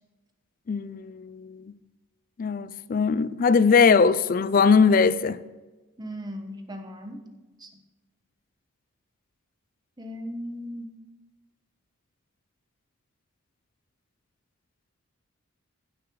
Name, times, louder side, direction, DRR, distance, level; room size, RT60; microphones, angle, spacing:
voice 1, 0.7-1.7 2.4-5.4, left 5 dB, 40° left, 16 dB, 0.4 m, -21 dB
voice 2, 6.0-7.3 7.6-7.8 10.0-10.9, equal, 20° right, 5 dB, 1.0 m, -37 dB
15.5 x 6.4 x 3.9 m, 1.2 s
head